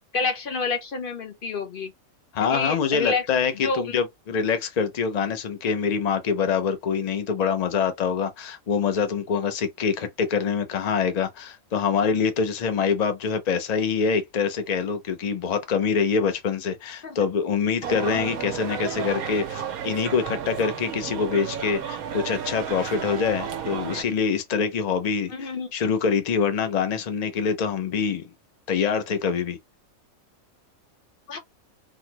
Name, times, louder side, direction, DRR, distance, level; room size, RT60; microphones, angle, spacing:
voice 1, 0.1-1.9 2.4-3.2 3.5-3.9 17.0-17.2 25.3-25.7 31.3-31.4, left 4 dB, 45° left, 0.9 m, -28 dB
voice 2, 2.3-28.3 28.7-29.6, left 6 dB, 85° left, 0.3 m, -25 dB
sound 1, 17.8-24.0, right 8 dB, 80° right, 1.1 m, -32 dB
3.9 x 2.1 x 2.8 m
omnidirectional pair, 1.5 m